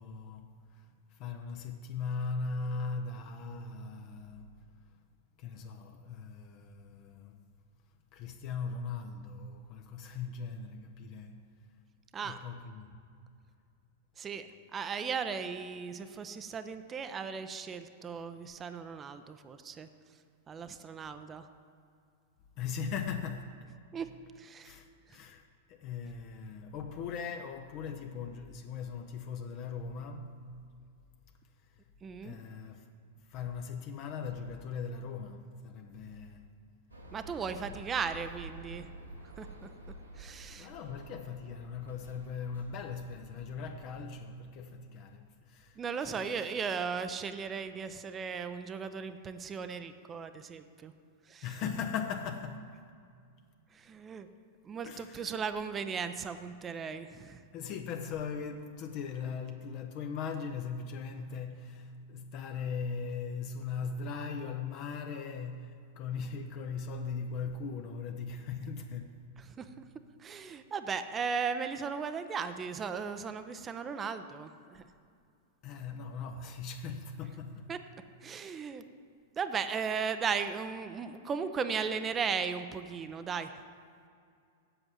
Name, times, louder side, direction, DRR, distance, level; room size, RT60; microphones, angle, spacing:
voice 1, 0.0-4.7 5.4-7.5 8.1-11.5 12.2-12.9 22.6-23.6 24.6-30.4 31.7-31.8 32.2-32.9 33.2-36.5 37.7-37.8 40.2-46.5 51.4-52.8 54.9-55.4 57.5-69.3 75.6-77.7, left 5 dB, 40° left, 0.7 m, -39 dB
voice 2, 14.2-19.9 20.5-21.5 23.9-24.8 25.1-25.2 32.0-32.4 37.1-38.9 39.4-39.7 40.2-40.7 45.8-50.9 51.3-51.5 53.7-54.3 54.6-57.4 69.6-69.8 70.2-74.9 77.7-77.8 78.2-78.8 79.4-83.5, right 6 dB, 20° right, 0.6 m, -36 dB
sound 1, 36.9-44.0, right 2 dB, 85° right, 1.8 m, -49 dB
7.9 x 7.2 x 8.0 m
figure-of-eight pair, 95°, 0 cm